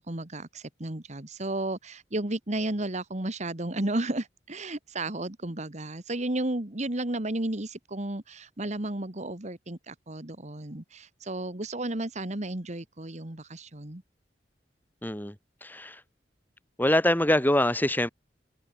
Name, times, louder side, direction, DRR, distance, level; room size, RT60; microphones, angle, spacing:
voice 1, 0.0-14.0, right 1 dB, 40° right, 1.9 m, -33 dB
voice 2, 15.0-15.3 15.6-16.0 16.8-18.1, left 1 dB, 10° left, 4.3 m, -24 dB
head